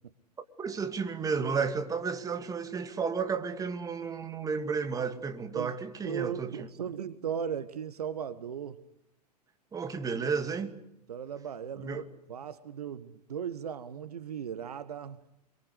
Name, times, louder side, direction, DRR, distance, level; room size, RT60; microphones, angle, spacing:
voice 1, 0.6-6.7 9.7-10.7 11.8-12.1, right 5 dB, 15° right, 2.6 m, -32 dB
voice 2, 6.0-8.8 11.1-15.2, right 8 dB, 70° right, 1.5 m, -37 dB
26.5 x 23.5 x 8.2 m
figure-of-eight pair, 95°, 21 cm